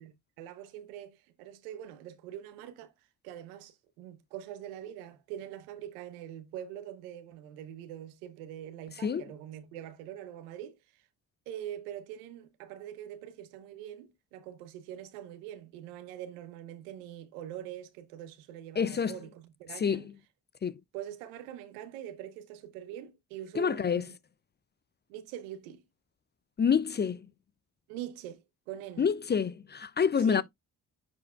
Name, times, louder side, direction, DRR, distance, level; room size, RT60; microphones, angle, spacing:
voice 1, 0.0-2.9 3.2-10.8 11.5-20.1 20.9-24.1 25.1-25.8 27.9-29.1 30.3-30.4, right 11 dB, 85° right, 0.9 m, -43 dB
voice 2, 18.8-19.2 19.7-20.1 20.6-20.8 23.5-24.0 26.6-27.3 29.0-30.4, left 6 dB, 25° left, 0.4 m, -27 dB
9.6 x 4.4 x 2.3 m
hypercardioid pair, 45°, 42 cm